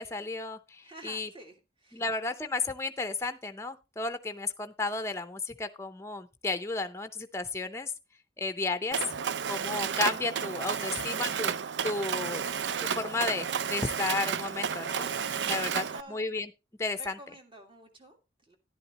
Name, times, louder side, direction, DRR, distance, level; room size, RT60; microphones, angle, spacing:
voice 1, 0.0-1.3 1.9-7.9 8.4-9.0 9.5-11.5 11.8-12.4 12.8-15.1 15.5-16.5 16.8-17.2, left 3 dB, 15° left, 9 dB, 0.6 m, -33 dB
voice 2, 0.8-2.0 10.8-11.1 15.4-16.2 17.0-18.6, right 1 dB, 30° right, 4 dB, 1.9 m, -50 dB
Mechanisms, 8.9-16.0, right 7 dB, 80° right, 0.5 m, -32 dB
11.0 x 11.0 x 2.9 m, 0.26 s
head